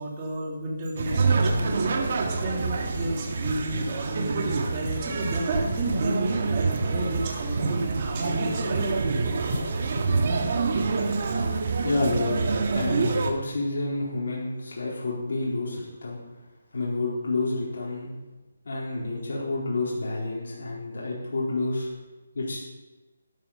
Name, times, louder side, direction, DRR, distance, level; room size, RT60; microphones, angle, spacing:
voice 1, 0.0-1.9 2.2-8.9 9.5-9.6 9.9-10.0 11.0-11.3, right 1 dB, 30° right, -1 dB, 3.1 m, -32 dB
sound 1, 1.0-13.3, right 4 dB, 50° right, 1.8 m, -26 dB
voice 2, 11.8-16.2 16.7-18.2 18.6-21.9 22.3-22.6, left 2 dB, 65° left, -5 dB, 4.1 m, -29 dB
12.5 x 10.5 x 5.7 m, 1.2 s
figure-of-eight pair, 155°, 0 cm